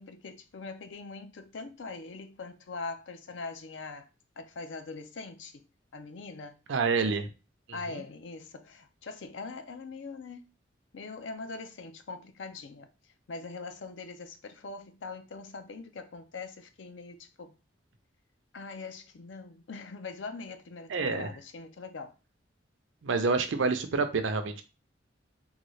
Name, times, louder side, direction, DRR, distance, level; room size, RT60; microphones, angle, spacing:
voice 1, 0.0-4.1 4.4-5.6 5.9-6.6 7.7-10.4 10.9-12.9 13.3-17.6 18.5-22.1, left 4 dB, 70° left, 0.5 m, -42 dB
voice 2, 6.7-7.3 7.7-8.0 20.9-21.3 23.0-24.6, right 4 dB, 75° right, 0.5 m, -28 dB
3.8 x 2.3 x 3.1 m
head